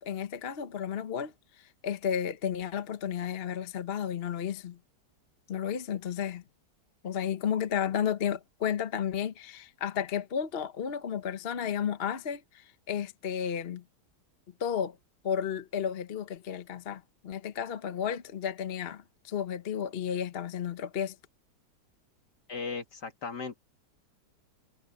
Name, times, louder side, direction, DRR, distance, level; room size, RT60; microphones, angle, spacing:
voice 1, 0.0-1.3 1.8-4.8 5.5-6.4 7.0-13.8 14.6-15.0 15.2-21.1, left 8 dB, 45° left, 0.9 m, -32 dB
voice 2, 22.5-23.6, left 5 dB, 70° left, 2.9 m, -37 dB
omnidirectional pair, 1.9 m